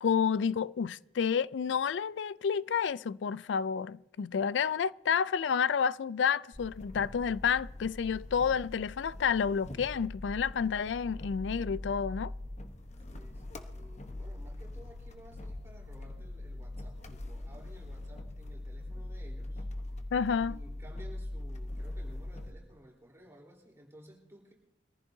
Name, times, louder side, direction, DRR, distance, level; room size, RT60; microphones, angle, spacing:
voice 1, 0.0-12.3 20.1-20.6, left 6 dB, 90° left, 0.4 m, -30 dB
sound 1, 6.5-22.5, left 1 dB, 40° left, 1.0 m, -42 dB
voice 2, 13.1-19.7 20.0-20.1 20.5-24.5, right 1 dB, 15° right, 3.8 m, -55 dB
24.5 x 15.0 x 2.7 m
head